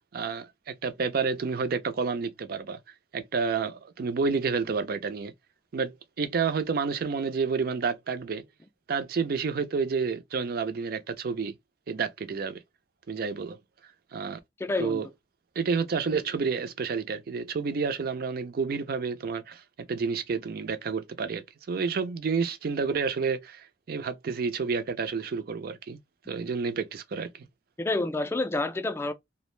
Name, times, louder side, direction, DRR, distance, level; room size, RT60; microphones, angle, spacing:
voice 1, 0.0-2.8 3.1-5.3 5.7-8.4 8.9-11.5 11.9-12.6 13.1-13.6 14.1-14.4 14.8-15.1 15.6-19.6 19.9-26.0 26.3-27.5, right 5 dB, 60° right, 0.4 m, -30 dB
voice 2, 14.6-15.0 27.8-29.1, left 2 dB, 15° left, 0.3 m, -28 dB
2.4 x 2.0 x 3.1 m
head